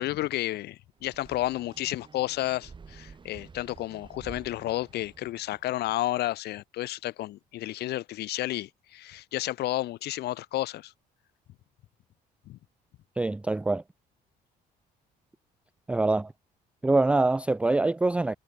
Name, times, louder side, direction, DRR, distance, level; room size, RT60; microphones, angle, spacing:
voice 1, 0.0-10.9 12.5-12.6, left 15 dB, 75° left, 2.7 m, -31 dB
sound 1, 1.0-5.9, right 5 dB, 30° right, 3.6 m, -50 dB
voice 2, 13.2-13.8 15.9-16.3 16.8-18.4, right 2 dB, 5° right, 0.3 m, -24 dB
cardioid pair, 110°, 17 cm